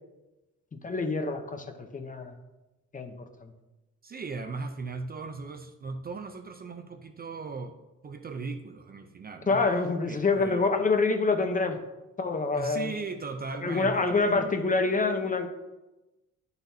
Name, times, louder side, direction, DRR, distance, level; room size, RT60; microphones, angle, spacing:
voice 1, 0.8-1.6 1.9-2.3 2.9-3.1 3.4-3.5 9.5-11.8 12.2-12.9 13.6-15.5, left 3 dB, 25° left, 7 dB, 0.8 m, -26 dB
voice 2, 4.0-9.6 10.1-10.7 12.5-14.6, right 4 dB, 30° right, 7 dB, 0.5 m, -38 dB
11.5 x 4.1 x 2.7 m, 1.0 s
cardioid pair, 90°, 30 cm